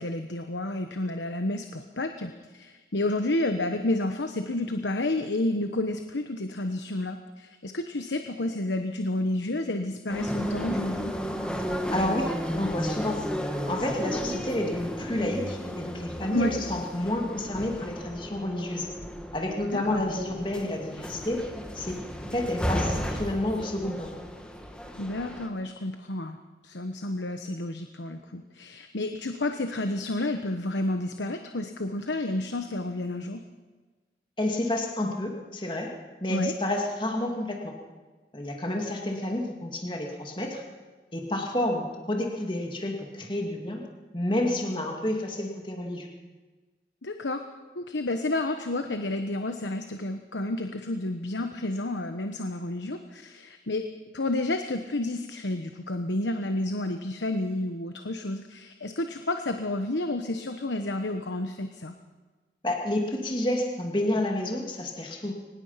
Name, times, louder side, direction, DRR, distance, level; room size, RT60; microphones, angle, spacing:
voice 1, 0.0-11.1 16.3-16.6 19.7-20.0 25.0-26.4 26.6-33.4 36.3-36.5 47.0-47.4 47.7-53.9 54.1-61.9, left 2 dB, 85° left, 6 dB, 1.2 m, -30 dB
sound 1, 10.1-25.5, equal, 5° left, 1.8 m, -34 dB
voice 2, 11.9-13.3 13.7-18.9 19.3-21.5 21.7-22.0 22.3-24.1 34.4-35.9 36.2-37.8 38.3-40.6 41.1-43.8 44.1-46.1 62.6-65.3, left 1 dB, 25° left, 1 dB, 2.5 m, -29 dB
23.5 x 20.0 x 5.8 m, 1.3 s
head